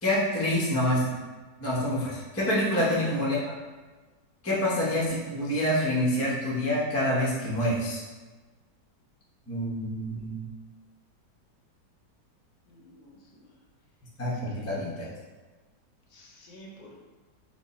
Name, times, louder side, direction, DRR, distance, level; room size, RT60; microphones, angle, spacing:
voice 1, 0.0-1.1 1.6-3.4 4.4-8.0 9.5-10.4 14.2-15.1, left 1 dB, 15° left, -6 dB, 0.5 m, -27 dB
voice 2, 2.6-3.1 12.7-13.5 14.5-14.7 16.1-17.0, right 1 dB, 65° left, -2 dB, 1.1 m, -45 dB
4.9 x 2.3 x 4.0 m, 1.3 s
omnidirectional pair, 2.0 m